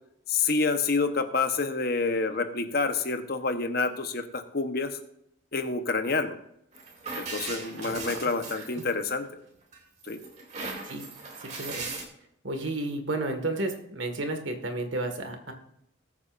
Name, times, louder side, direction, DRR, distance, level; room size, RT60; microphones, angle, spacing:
voice 1, 0.3-5.0 5.5-6.4 7.2-9.3 10.1-10.2, left 4 dB, 50° left, 7 dB, 1.0 m, -28 dB
sound 1, 6.7-9.3 9.7-12.0, right 3 dB, 35° right, 2.6 m, -38 dB
voice 2, 7.8-8.6 10.8-11.1 11.4-11.9 12.4-15.5, right 2 dB, 75° right, 5 dB, 1.8 m, -32 dB
20.5 x 8.4 x 2.6 m, 0.75 s
head